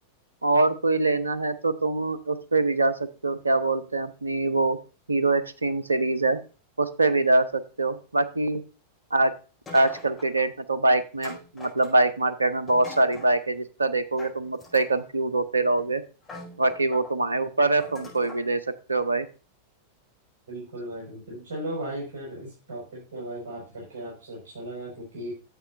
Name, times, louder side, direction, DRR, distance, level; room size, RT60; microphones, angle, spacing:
voice 1, 0.4-2.9 3.2-4.8 5.1-6.4 6.8-8.6 9.1-9.3 9.7-16.0 16.6-18.6 18.9-19.3, right 2 dB, 80° right, 13 dB, 0.7 m, -24 dB
sound 1, 9.7-10.5 11.2-12.2 12.7-13.3 14.2-15.1 15.8-15.9 16.2-17.1 17.8-18.5, left 1 dB, 15° left, 5.6 m, -43 dB
voice 2, 20.5-25.3, right 1 dB, 55° right, -5 dB, 5.3 m, -36 dB
11.0 x 7.6 x 2.6 m, 0.33 s
figure-of-eight pair, 90°, 0 cm